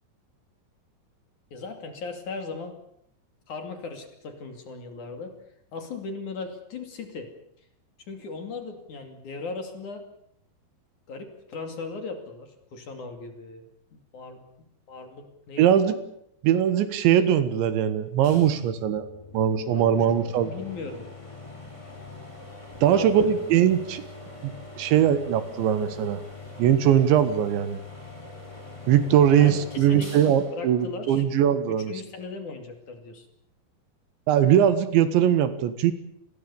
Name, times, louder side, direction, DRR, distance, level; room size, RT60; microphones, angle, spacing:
voice 1, 1.5-2.8 3.5-5.3 5.7-7.3 8.0-10.1 11.1-13.7 13.9-14.4 14.9-15.8 19.7-21.4 22.9-23.5 29.3-30.1 30.5-31.2 31.7-33.3, left 4 dB, 45° left, 6 dB, 3.5 m, -38 dB
voice 2, 15.6-15.9 16.4-19.1 19.3-20.5 22.8-24.0 24.4-26.2 26.6-27.8 28.9-31.9 34.3-35.9, right 9 dB, 80° right, 12 dB, 3.8 m, -21 dB
sound 1, 18.2-31.7, left 3 dB, 5° left, 3.9 m, -44 dB
29.0 x 21.0 x 7.1 m, 0.73 s
omnidirectional pair, 5.2 m